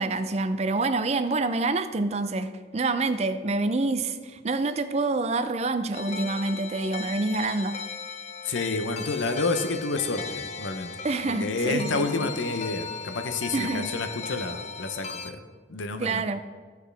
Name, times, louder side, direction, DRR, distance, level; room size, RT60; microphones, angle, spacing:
voice 1, 0.0-7.8 11.0-12.3 13.5-14.0 16.0-16.4, right 3 dB, 35° right, 10 dB, 0.4 m, -27 dB
sound 1, 5.9-15.3, left 5 dB, 35° left, 0.4 m, -37 dB
voice 2, 8.4-10.9 11.3-15.4 15.7-16.2, left 3 dB, 75° left, 8 dB, 0.7 m, -29 dB
14.0 x 4.7 x 3.3 m, 1.5 s
head